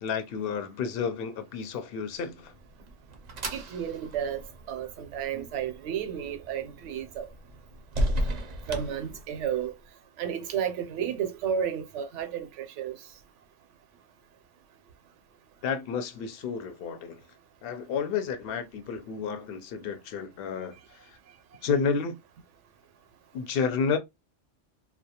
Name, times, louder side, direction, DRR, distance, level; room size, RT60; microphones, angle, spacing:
voice 1, 0.0-2.5 15.6-17.2 17.6-20.8 21.6-22.2 23.3-24.0, left 6 dB, 60° left, 0.7 m, -31 dB
sound 1, 2.3-9.7, equal, 50° right, 0.5 m, -35 dB
voice 2, 3.5-4.4 4.7-7.3 8.7-9.7 10.2-13.0, right 8 dB, 80° right, 0.9 m, -32 dB
2.2 x 2.2 x 2.7 m
omnidirectional pair, 1.2 m